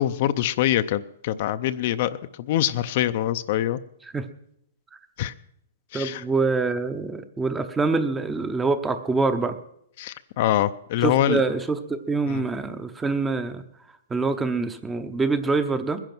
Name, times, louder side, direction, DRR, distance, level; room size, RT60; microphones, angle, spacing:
voice 1, 0.0-3.8 5.2-5.3 5.9-6.2 10.0-11.4 12.3-12.4, left 12 dB, 45° left, 11 dB, 0.6 m, -24 dB
voice 2, 5.9-9.6 11.0-13.6 14.1-16.0, right 3 dB, 10° right, 10 dB, 0.8 m, -25 dB
20.5 x 10.5 x 6.1 m, 0.74 s
hypercardioid pair, 165°, 0 cm